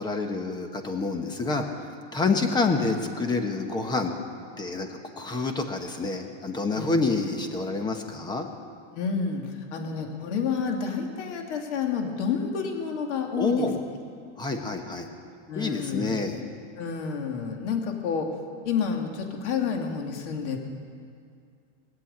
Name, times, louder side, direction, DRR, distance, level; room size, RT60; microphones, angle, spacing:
voice 1, 0.0-4.1 4.6-8.5 13.4-13.8 14.4-15.1 15.5-16.4, left 3 dB, 10° left, 6 dB, 1.1 m, -28 dB
voice 2, 8.9-9.4 9.7-13.7 15.5-16.1 16.8-18.3 18.6-20.6, left 6 dB, 85° left, 3 dB, 2.4 m, -29 dB
21.5 x 7.8 x 8.6 m, 2.3 s
supercardioid pair, 160°, 34 cm